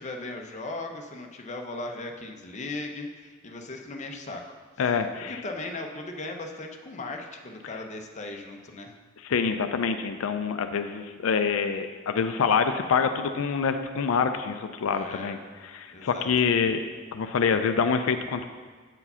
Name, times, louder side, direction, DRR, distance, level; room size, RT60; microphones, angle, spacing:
voice 1, 0.0-4.5 5.2-8.9 14.9-15.4 15.9-16.3, left 2 dB, 35° left, 2 dB, 0.7 m, -37 dB
voice 2, 4.8-5.4 9.2-15.4 15.6-16.8 17.1-18.4, left 6 dB, 85° left, 8 dB, 0.4 m, -26 dB
7.9 x 4.8 x 5.5 m, 1.5 s
head